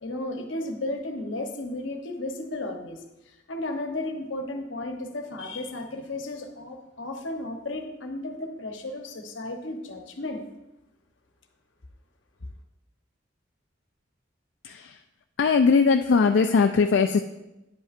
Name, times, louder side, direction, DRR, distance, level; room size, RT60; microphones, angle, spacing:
voice 1, 0.0-10.4, left 2 dB, 85° left, 4 dB, 0.9 m, -34 dB
voice 2, 14.6-15.0 15.4-17.2, left 5 dB, 65° left, 5 dB, 0.3 m, -20 dB
10.0 x 7.9 x 2.5 m, 0.97 s
head